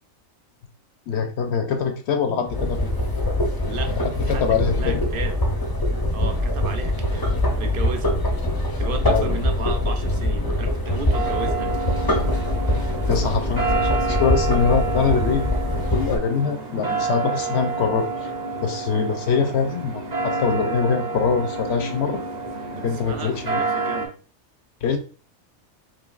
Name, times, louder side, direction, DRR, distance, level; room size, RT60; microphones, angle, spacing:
voice 1, 1.1-2.9 4.0-5.1 9.0-9.4 13.1-13.6 14.1-15.4 15.9-18.3 18.6-22.2 22.7-23.6 24.8-25.0, left 6 dB, 65° left, 6 dB, 0.8 m, -23 dB
sound 1, 2.5-16.2, left 1 dB, 25° left, 0.5 m, -23 dB
voice 2, 4.8-5.4 6.1-7.3 7.6-8.2 8.8-11.8 13.2-14.3 23.0-24.1 24.8-25.0, right 5 dB, 60° right, 7 dB, 0.6 m, -34 dB
sound 2, 11.1-24.1, right 4 dB, 35° right, 0.8 m, -29 dB
5.1 x 3.1 x 2.4 m, 0.39 s
omnidirectional pair, 1.4 m